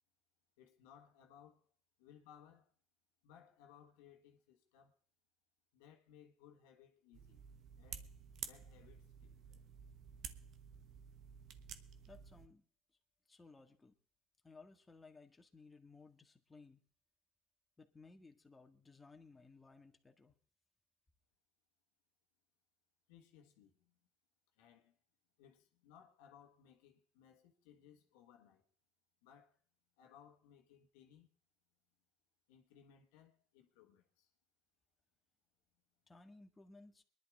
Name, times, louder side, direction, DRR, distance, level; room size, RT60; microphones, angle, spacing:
voice 1, 0.6-1.7 2.0-2.7 3.2-4.9 5.7-7.4 7.8-8.1 8.4-9.6 23.1-24.0 24.6-25.0 25.4-28.6 29.2-29.6 30.0-31.3 32.5-34.3, left 9 dB, 85° left, 1.6 m, -63 dB
sound 1, 7.1-12.5, right 8 dB, 65° right, 1.2 m, -52 dB
voice 2, 12.1-12.6 13.3-14.0 14.4-16.8 17.8-20.4 36.1-37.0, left 3 dB, 20° left, 1.9 m, -60 dB
24.0 x 11.0 x 3.6 m
hypercardioid pair, 70°, 0 cm